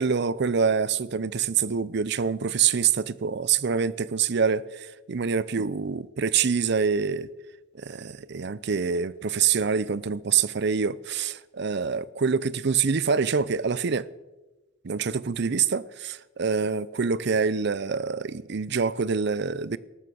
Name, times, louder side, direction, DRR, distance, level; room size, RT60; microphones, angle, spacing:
voice 1, 0.0-7.3 7.7-14.1 14.8-19.8, right 6 dB, 55° right, 0.6 m, -26 dB
14.0 x 12.5 x 6.3 m
head